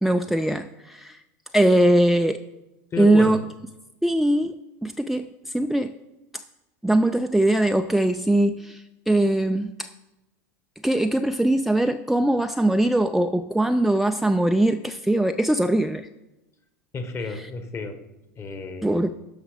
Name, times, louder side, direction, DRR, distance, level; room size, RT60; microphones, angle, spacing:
voice 1, 0.0-1.2 1.5-2.4 3.0-3.4 4.0-5.9 6.8-9.9 10.8-16.1 17.3-17.5 18.8-19.2, right 1 dB, ahead, 7 dB, 0.3 m, -21 dB
voice 2, 2.9-3.4 16.9-18.0 18.4-19.0, left 4 dB, 30° left, 8 dB, 1.3 m, -32 dB
12.0 x 5.8 x 5.0 m, 1.0 s
hypercardioid pair, 100°, 9 cm